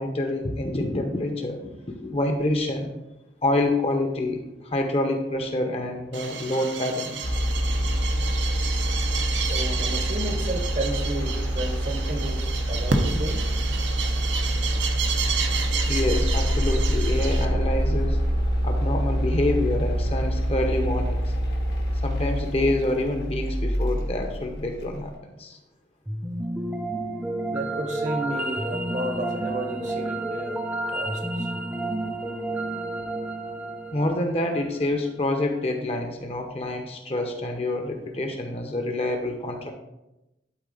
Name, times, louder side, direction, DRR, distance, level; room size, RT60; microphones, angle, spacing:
voice 1, 0.0-1.6 1.9-2.9 3.4-7.3 15.9-18.2 18.6-21.2 22.0-25.6 33.9-39.7, left 1 dB, 35° left, 0.8 m, -27 dB
sound 1, 6.1-17.5, right 5 dB, 85° right, 0.8 m, -31 dB
sound 2, 7.2-25.0, equal, 65° left, 1.4 m, -26 dB
voice 2, 9.4-13.4 15.5-15.6 27.5-30.6 30.9-31.5, right 1 dB, 40° right, 0.9 m, -32 dB
sound 3, 26.1-35.2, right 2 dB, 10° right, 0.5 m, -31 dB
11.5 x 3.9 x 3.9 m
head